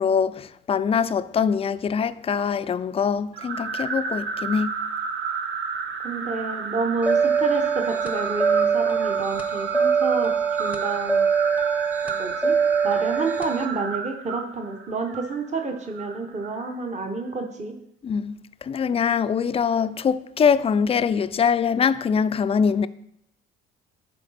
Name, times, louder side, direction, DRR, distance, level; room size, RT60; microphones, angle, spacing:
voice 1, 0.0-4.7 18.0-22.9, left 6 dB, 30° left, 0.3 m, -23 dB
sound 1, 3.3-16.7, right 5 dB, 65° right, 0.7 m, -32 dB
voice 2, 6.0-10.3 10.6-11.3 12.0-12.6 12.8-17.7, right 3 dB, 35° right, 0.9 m, -29 dB
sound 2, 7.0-13.7, right 6 dB, 5° right, 0.8 m, -23 dB
9.7 x 3.9 x 4.2 m
supercardioid pair, 70°, 21 cm